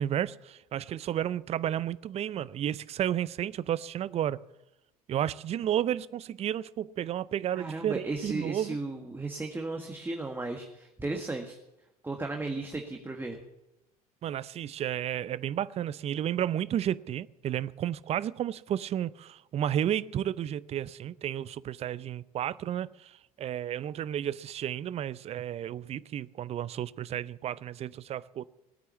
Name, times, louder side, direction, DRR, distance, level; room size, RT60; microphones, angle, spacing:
voice 1, 0.0-4.4 5.1-8.8 14.2-28.5, right 10 dB, 35° right, 0.5 m, -32 dB
voice 2, 7.5-11.6 12.0-13.4, right 2 dB, 10° right, 1.7 m, -35 dB
19.0 x 9.2 x 7.2 m
figure-of-eight pair, 70°, 19 cm